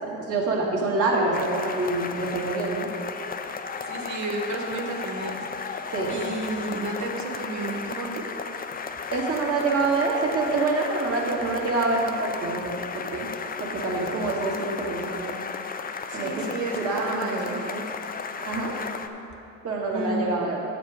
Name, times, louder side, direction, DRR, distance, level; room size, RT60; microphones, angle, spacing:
voice 1, 0.0-2.9 5.9-6.2 9.1-13.3 13.6-15.4 16.1-16.5 16.8-17.8 18.4-18.8 19.6-20.6, right 3 dB, 50° right, -3 dB, 2.0 m, -26 dB
sound 1, 1.3-19.1, left 5 dB, 30° left, 0.5 m, -34 dB
voice 2, 3.8-5.8 6.1-8.2 16.1-17.7 19.9-20.4, right 2 dB, 70° right, 1 dB, 1.4 m, -32 dB
8.0 x 7.8 x 5.0 m, 2.8 s
cardioid pair, 90°, 30 cm